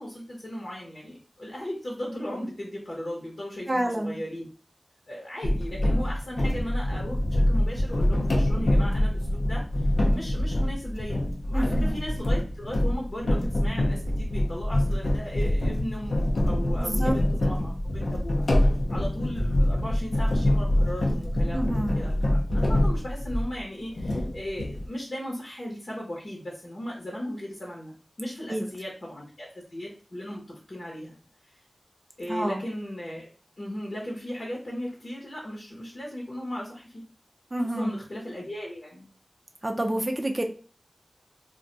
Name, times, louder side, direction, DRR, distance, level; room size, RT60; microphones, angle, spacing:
voice 1, 0.0-4.5 5.1-27.9 28.2-31.2 32.2-33.3 33.6-37.0 37.8-39.1, equal, 60° left, -3 dB, 0.9 m, -37 dB
voice 2, 3.7-4.2 11.5-11.9 16.8-17.2 21.5-22.0 28.5-28.6 32.3-32.6 37.5-38.0 39.6-40.4, right 1 dB, 30° right, 3 dB, 0.4 m, -28 dB
sound 1, 5.4-23.6 24.0-24.9, left 1 dB, 80° left, 0.6 m, -25 dB
2.3 x 2.2 x 3.8 m, 0.39 s
wide cardioid pair, 75°, 0 cm